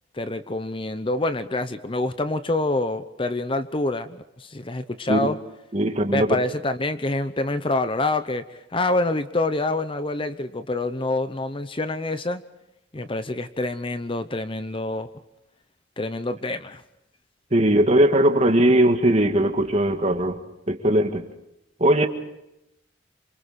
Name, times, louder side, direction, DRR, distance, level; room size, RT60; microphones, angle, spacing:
voice 1, 0.1-5.4 6.1-12.4 12.9-15.1 16.0-16.8, left 2 dB, 30° left, 11 dB, 0.8 m, -26 dB
voice 2, 5.7-6.3 17.5-20.4 20.7-21.2 21.8-22.1, right 1 dB, 35° right, 6 dB, 1.9 m, -19 dB
28.0 x 26.5 x 4.3 m, 0.87 s
head